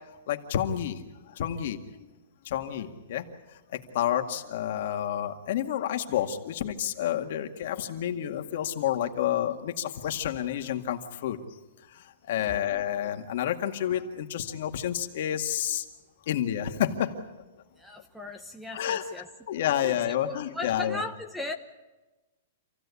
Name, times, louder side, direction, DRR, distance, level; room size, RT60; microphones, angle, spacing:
voice 1, 0.3-1.0 1.3-2.1 2.5-3.3 3.5-11.4 11.9-15.9 16.3-17.2 18.7-19.0 19.5-21.0, left 10 dB, 55° left, 5 dB, 2.0 m, -29 dB
voice 2, 17.8-19.3 19.8-21.5, left 2 dB, ahead, 7 dB, 1.0 m, -38 dB
27.5 x 15.5 x 8.5 m, 1.1 s
hypercardioid pair, 160°, 0 cm